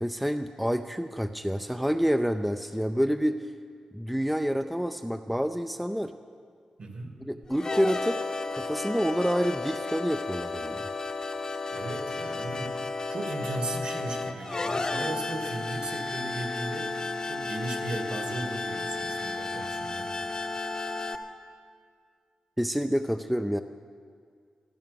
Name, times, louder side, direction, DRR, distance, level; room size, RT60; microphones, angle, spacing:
voice 1, 0.0-3.4 3.9-6.1 7.2-8.2 8.5-10.9 22.6-23.6, equal, ahead, 8 dB, 0.4 m, -28 dB
voice 2, 6.8-7.2 11.7-20.1, right 2 dB, 55° right, 3 dB, 2.3 m, -37 dB
sound 1, 7.4-21.2, left 3 dB, 35° left, 0.8 m, -33 dB
14.5 x 14.0 x 6.9 m, 2.1 s
wide cardioid pair, 120°, 2 cm